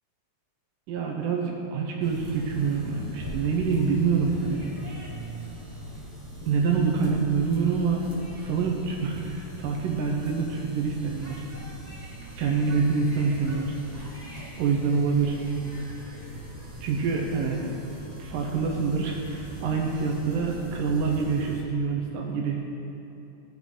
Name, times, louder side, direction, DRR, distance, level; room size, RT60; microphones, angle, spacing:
voice 1, 0.9-4.6 6.5-8.0 8.4-11.4 12.4-13.8 14.6-15.4 16.8-17.7 18.2-22.6, right 5 dB, 85° right, -1 dB, 2.5 m, -26 dB
sound 1, 2.0-21.6, equal, 70° right, 0.3 m, -41 dB
16.5 x 5.7 x 3.7 m, 2.8 s
omnidirectional pair, 3.8 m